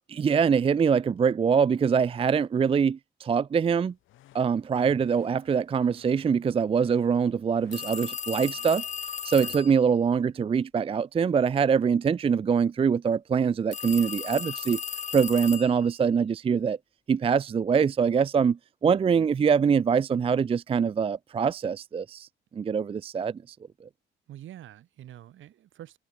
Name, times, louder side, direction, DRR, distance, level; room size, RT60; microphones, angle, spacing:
voice 1, 0.1-3.9 4.3-8.8 9.2-14.8 15.1-16.8 17.1-22.3 22.6-23.6 23.8-23.9, right 6 dB, 30° right, 0.4 m, -24 dB
sound 1, 3.8-9.2, left 14 dB, 85° left, 7.1 m, -60 dB
voice 2, 4.8-5.1 9.3-9.6 24.3-26.0, right 12 dB, 75° right, 4.9 m, -46 dB
sound 2, 7.7-9.8 13.7-15.9, left 6 dB, 35° left, 0.9 m, -35 dB
cardioid pair, 90°, 20 cm